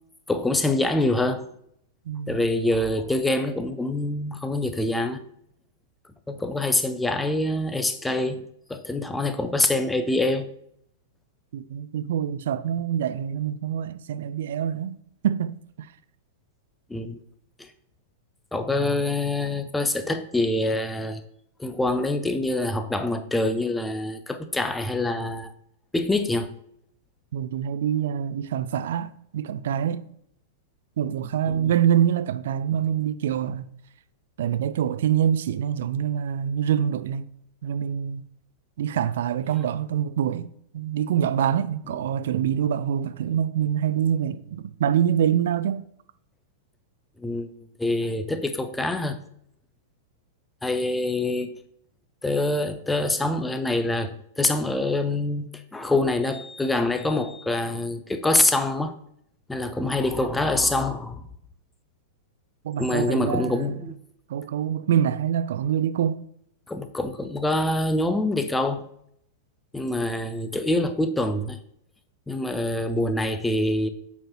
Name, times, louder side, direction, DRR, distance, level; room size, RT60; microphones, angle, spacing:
voice 1, 0.3-1.5 2.3-5.2 6.3-8.4 8.7-10.5 16.9-17.2 17.6-17.7 18.5-21.2 21.6-25.5 25.9-26.5 31.5-31.7 47.2-47.5 47.8-49.2 50.6-51.6 52.2-58.9 59.5-61.2 62.8-63.9 66.7-68.8 69.7-71.6 72.3-73.9, left 2 dB, 5° left, 0.5 m, -25 dB
voice 2, 2.1-2.5 11.5-15.0 15.2-15.9 27.3-30.0 31.0-33.7 34.4-37.3 37.6-38.3 38.8-45.8 62.6-63.9 64.3-66.2, right 9 dB, 55° right, 0.3 m, -25 dB
7.3 x 4.5 x 2.9 m
figure-of-eight pair, 95°, 0 cm